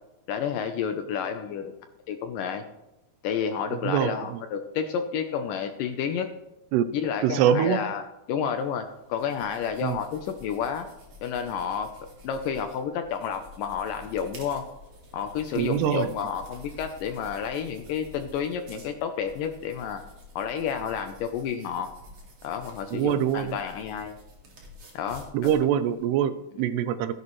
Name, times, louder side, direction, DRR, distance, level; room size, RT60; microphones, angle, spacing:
voice 1, 0.3-1.7 2.1-2.6 3.2-6.3 6.9-8.0 8.3-10.9 11.2-11.9 12.2-14.6 15.1-20.0 20.4-21.9 22.4-24.1 24.9-25.5, left 7 dB, 80° left, 7 dB, 1.9 m, -30 dB
voice 2, 3.8-4.4 6.7-6.9 7.2-7.8 9.8-10.0 15.6-16.1 22.9-23.6 25.3-27.1, right 9 dB, 85° right, 12 dB, 2.7 m, -24 dB
sound 1, 8.6-26.1, left 2 dB, 40° right, 2.8 m, -49 dB
15.0 x 11.0 x 3.2 m, 0.92 s
omnidirectional pair, 4.7 m